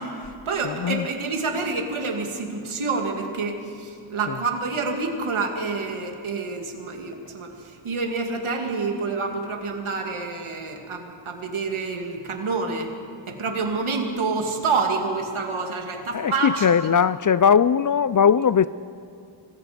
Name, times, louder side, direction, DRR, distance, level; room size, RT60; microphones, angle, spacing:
voice 1, 0.0-12.9 13.3-16.7, right 4 dB, 75° right, 2 dB, 2.5 m, -28 dB
voice 2, 0.6-1.0 16.1-18.7, left 7 dB, 40° left, 17 dB, 0.4 m, -19 dB
25.5 x 19.5 x 5.2 m, 2.4 s
wide cardioid pair, 85°, 49 cm